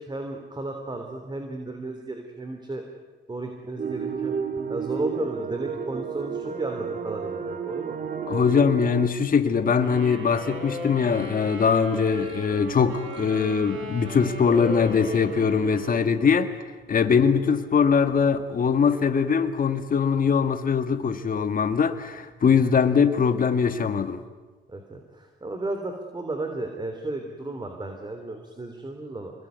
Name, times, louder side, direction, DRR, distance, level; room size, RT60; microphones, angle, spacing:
voice 1, 0.0-2.8 3.3-4.3 4.7-8.0 17.1-17.2 24.7-29.3, right 2 dB, 20° right, 3.5 m, -34 dB
sound 1, 3.8-9.1, right 6 dB, 45° right, 2.0 m, -31 dB
voice 2, 8.3-16.5 16.9-24.2, left 6 dB, 45° left, 1.9 m, -22 dB
Wind instrument woodwind instrument, 9.8-16.2, equal, 75° right, 6.1 m, -37 dB
26.5 x 21.5 x 9.5 m
cardioid pair, 90°, 20 cm